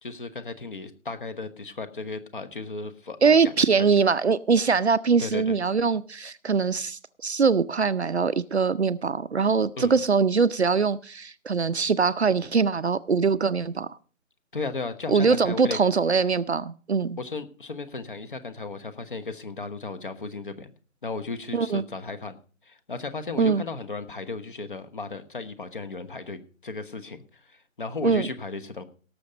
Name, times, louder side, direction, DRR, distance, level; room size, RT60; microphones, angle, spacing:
voice 1, 0.0-3.8 5.2-5.6 9.8-10.0 14.5-15.8 17.2-20.7 21.0-22.3 22.6-28.8, left 3 dB, 40° left, 10 dB, 1.2 m, -35 dB
voice 2, 3.2-14.0 15.1-17.2 21.5-21.8 23.4-23.6 28.0-28.3, right 5 dB, 55° right, 14 dB, 0.6 m, -22 dB
17.5 x 6.9 x 5.1 m, 0.41 s
hypercardioid pair, 170°, 41 cm